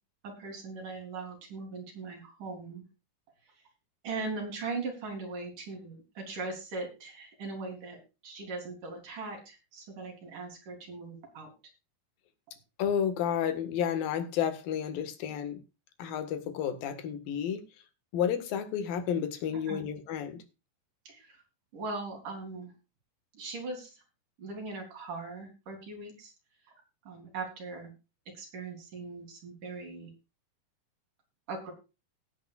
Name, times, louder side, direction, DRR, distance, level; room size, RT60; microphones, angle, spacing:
voice 1, 0.2-2.8 4.0-11.5 19.7-19.8 21.0-21.4 21.7-22.7 23.3-24.0 24.4-26.3 27.0-27.9 28.3-30.1 31.5-31.7, right 3 dB, 55° right, 5.0 m, -40 dB
voice 2, 12.8-15.6 16.0-17.6 18.1-20.4, left 8 dB, 65° left, 3.3 m, -31 dB
18.5 x 9.2 x 2.5 m
omnidirectional pair, 4.6 m